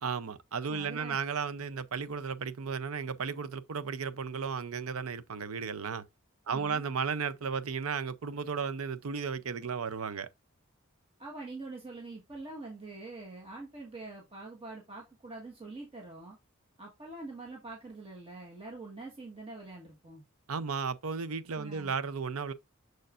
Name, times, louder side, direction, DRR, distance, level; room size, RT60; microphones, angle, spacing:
voice 1, 0.0-6.0 6.5-10.3 20.5-22.5, right 5 dB, 85° right, 0.6 m, -34 dB
voice 2, 0.7-1.2 6.5-6.8 11.2-16.4 16.8-20.2 21.5-21.9, right 2 dB, 25° right, 1.4 m, -45 dB
6.6 x 6.4 x 2.5 m
head